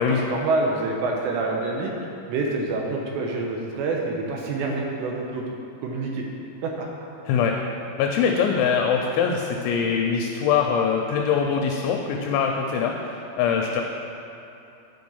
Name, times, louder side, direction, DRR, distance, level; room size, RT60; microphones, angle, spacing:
voice 1, 0.0-1.9 2.3-5.4 5.8-6.2 6.6-6.9, right 3 dB, 80° right, 0 dB, 2.8 m, -27 dB
voice 2, 8.0-13.8, left 6 dB, 80° left, 2 dB, 2.8 m, -23 dB
10.5 x 5.1 x 5.5 m, 2.8 s
omnidirectional pair, 5.4 m